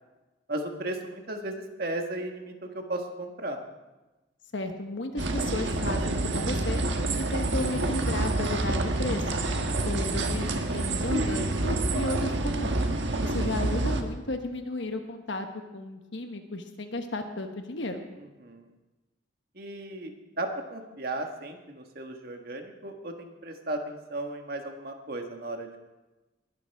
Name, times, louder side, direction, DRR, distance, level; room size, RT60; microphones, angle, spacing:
voice 1, 0.5-3.6 18.2-18.6 19.5-25.9, right 1 dB, 55° right, 4 dB, 1.6 m, -35 dB
voice 2, 4.5-6.8 7.2-9.3 9.9-12.9 13.2-15.5 15.7-18.0, left 2 dB, 75° left, 5 dB, 1.2 m, -34 dB
sound 1, 5.2-14.0, right 2 dB, 75° right, 1.3 m, -28 dB
20.5 x 12.0 x 3.5 m, 1.1 s
head